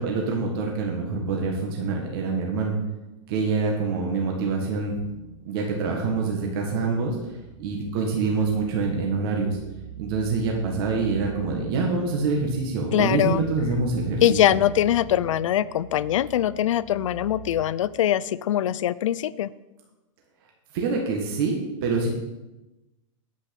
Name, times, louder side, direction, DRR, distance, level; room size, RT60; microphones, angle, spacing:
voice 1, 0.0-2.8 3.3-5.0 5.5-7.2 7.6-9.6 10.0-14.4 20.7-22.1, right 4 dB, 45° right, 0 dB, 1.8 m, -26 dB
sound 1, 4.9-17.6, right 10 dB, 65° right, 1.6 m, -43 dB
voice 2, 12.9-13.4 14.2-19.5, left 11 dB, 70° left, 18 dB, 0.5 m, -22 dB
9.7 x 8.5 x 5.4 m, 1.0 s
hypercardioid pair, 160°, 17 cm